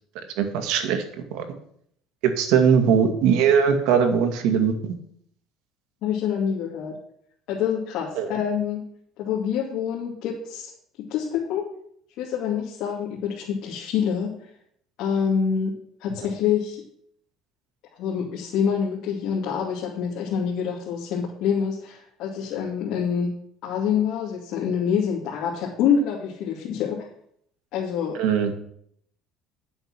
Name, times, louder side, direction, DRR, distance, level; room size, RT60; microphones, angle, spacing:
voice 1, 0.4-1.0 1.3-1.5 2.2-4.9 8.2-8.3 28.1-28.5, right 7 dB, 75° right, 6 dB, 2.0 m, -20 dB
voice 2, 6.0-7.0 7.5-8.8 9.2-10.7 11.0-11.7 12.2-14.5 15.0-16.8 18.0-23.3 23.6-27.1 27.7-28.2, left 7 dB, 60° left, -3 dB, 2.5 m, -26 dB
10.5 x 7.8 x 6.0 m, 0.67 s
cardioid pair, 145°, 0 cm